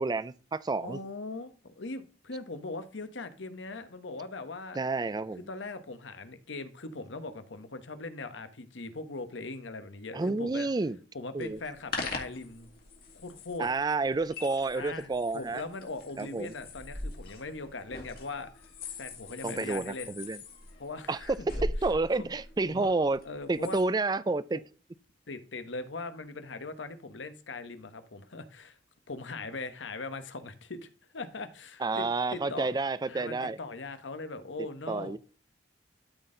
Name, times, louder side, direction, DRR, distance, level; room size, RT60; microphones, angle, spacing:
voice 1, 0.0-1.0 4.8-5.5 10.1-11.0 11.3-11.6 13.6-15.6 16.2-16.5 19.4-20.4 21.1-23.2 23.5-24.6 31.8-33.6 34.9-35.2, right 3 dB, 20° right, 0.4 m, -30 dB
voice 2, 0.8-4.8 5.5-10.7 11.1-12.7 13.1-13.7 14.7-18.7 19.0-20.1 20.8-21.6 22.1-22.3 22.7-22.9 23.2-23.8 25.3-28.8 29.1-30.9 31.1-32.7 33.1-35.2, left 3 dB, 80° left, 1.0 m, -40 dB
sound 1, 11.4-23.8, left 2 dB, 55° left, 1.9 m, -42 dB
12.5 x 4.2 x 3.8 m
head